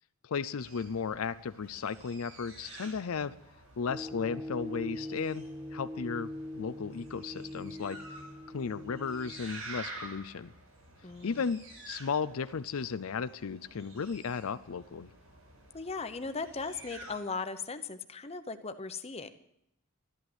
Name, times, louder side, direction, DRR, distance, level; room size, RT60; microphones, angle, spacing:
voice 1, 0.2-3.3 3.8-5.4 5.7-8.0 8.5-10.5 11.2-15.1, left 5 dB, 75° left, 13 dB, 0.5 m, -35 dB
sound 1, 0.6-17.2, right 2 dB, 70° right, 6.6 m, -50 dB
sound 2, 3.9-9.4, left 1 dB, 5° right, 0.8 m, -42 dB
voice 2, 11.0-11.4 15.7-19.3, left 4 dB, 30° left, 9 dB, 0.9 m, -38 dB
12.5 x 11.5 x 8.0 m, 0.78 s
head